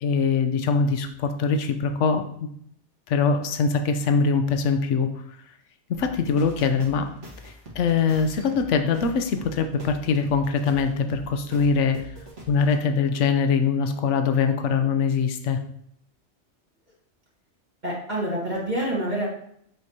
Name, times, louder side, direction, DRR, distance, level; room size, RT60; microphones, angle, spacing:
voice 1, 0.0-2.2 3.1-5.1 5.9-7.1 7.4-12.0 12.5-15.6, left 5 dB, 85° left, 7 dB, 1.0 m, -23 dB
sound 1, 5.9-12.8, equal, 80° right, 1.7 m, -43 dB
voice 2, 17.8-19.3, right 1 dB, 40° right, -6 dB, 1.6 m, -27 dB
7.8 x 5.0 x 2.8 m, 0.69 s
omnidirectional pair, 1.2 m